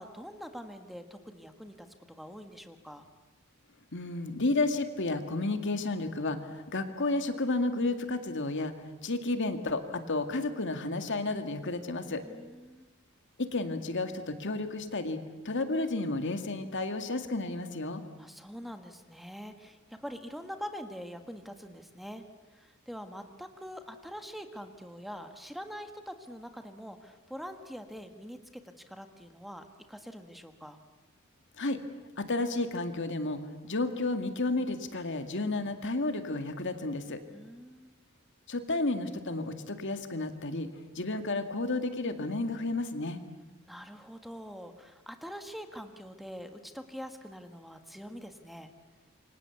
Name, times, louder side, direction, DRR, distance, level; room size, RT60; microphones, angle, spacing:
voice 1, 0.0-3.1 12.2-12.9 18.2-22.2 22.5-28.6 28.9-30.8 37.3-37.9 43.7-48.7, equal, ahead, 7 dB, 1.6 m, -44 dB
voice 2, 3.9-8.7 9.0-12.2 13.4-18.0 31.6-31.8 32.2-37.2 38.5-40.7 41.0-43.2, left 2 dB, 60° left, 8 dB, 2.1 m, -32 dB
28.0 x 24.5 x 8.3 m, 1.2 s
head